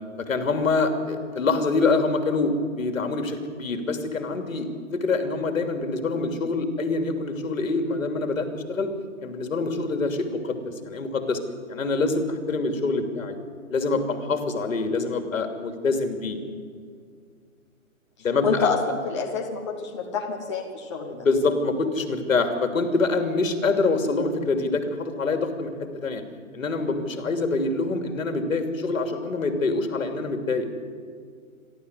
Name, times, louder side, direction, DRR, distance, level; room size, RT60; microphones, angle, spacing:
voice 1, 0.2-8.9 9.2-11.4 11.7-13.4 13.7-16.4 18.2-18.6 21.1-25.7 26.0-26.2 26.5-30.6, left 3 dB, 70° left, 7 dB, 2.9 m, -25 dB
voice 2, 18.4-21.2, left 5 dB, 20° left, -1 dB, 1.3 m, -27 dB
28.0 x 12.0 x 8.2 m, 2.1 s
hypercardioid pair, 175°, 42 cm